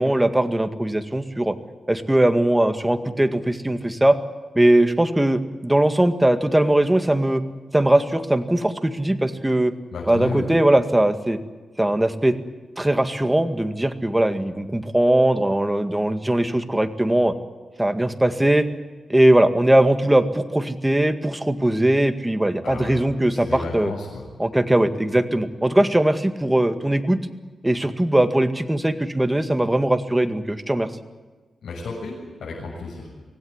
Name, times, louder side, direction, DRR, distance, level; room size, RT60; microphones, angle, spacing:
voice 1, 0.0-1.5 1.9-4.2 4.5-7.4 7.7-9.7 10.1-11.4 11.8-12.4 12.8-17.3 17.8-18.7 19.1-23.5 23.7-23.9 24.4-27.2 27.6-30.9, right 1 dB, 10° right, 8 dB, 1.9 m, -20 dB
voice 2, 9.9-10.5 22.6-23.0 23.3-24.2 31.6-33.1, left 3 dB, 85° left, -4 dB, 7.2 m, -32 dB
25.5 x 17.5 x 9.8 m, 1.3 s
cardioid pair, 90°, 0 cm